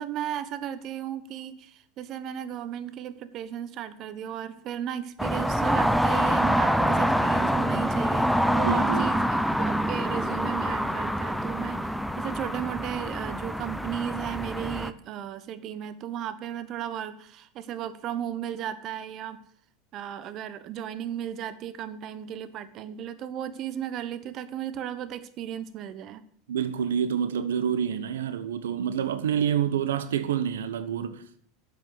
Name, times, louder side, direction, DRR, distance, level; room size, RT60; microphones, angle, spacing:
voice 1, 0.0-11.9 12.2-19.4 19.9-26.2, right 10 dB, 45° right, 1.2 m, -35 dB
sound 1, 5.2-14.9, equal, ahead, 0.9 m, -26 dB
voice 2, 8.6-9.1 26.5-31.2, right 8 dB, 80° right, 1.0 m, -27 dB
10.5 x 7.8 x 7.9 m
hypercardioid pair, 90°, 0 cm